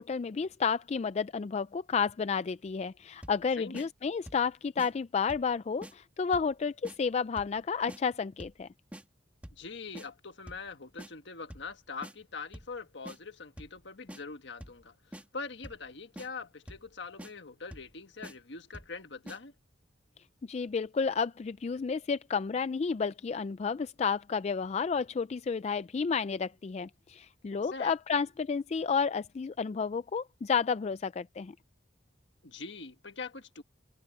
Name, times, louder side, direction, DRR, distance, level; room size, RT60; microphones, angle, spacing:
voice 1, 0.0-8.7 20.5-31.5, left 5 dB, 35° left, 0.3 m, -31 dB
sound 1, 3.2-3.5 3.7-3.9 4.3-4.5 4.8-4.9 5.3-5.5 5.8-5.9 6.3-6.6 6.8-7.0 7.4-7.6 7.9-8.0 8.4-8.6 8.9-9.0 9.4-9.7 10.0-10.1 10.5-10.7 11.0-11.1 11.5-11.7 12.0-12.1 12.5-12.8 13.1-13.2 13.6-13.8 14.1-14.2 14.6-14.8 15.1-15.3 15.6-15.9 16.2-16.3 16.7-16.9 17.2-17.3 17.7-17.9 18.2-18.4 18.7-19.0 19.3-19.4, equal, 5° right, 1.8 m, -46 dB
voice 2, 3.6-3.9 9.5-19.5 27.5-27.9 32.4-33.6, left 4 dB, 65° left, 1.5 m, -43 dB
head